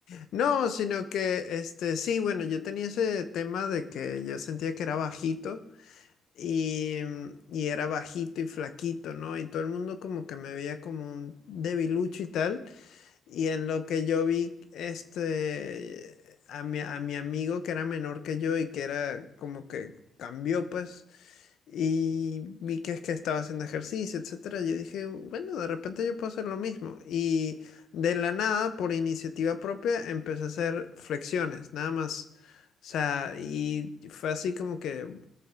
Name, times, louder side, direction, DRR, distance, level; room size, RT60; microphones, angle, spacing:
voice 1, 0.1-6.0 6.4-19.9 20.2-21.4 21.7-32.2 32.8-35.2, left 7 dB, 75° left, 11 dB, 0.9 m, -31 dB
19.0 x 6.9 x 3.8 m, 0.75 s
cardioid pair, 90°, 0 cm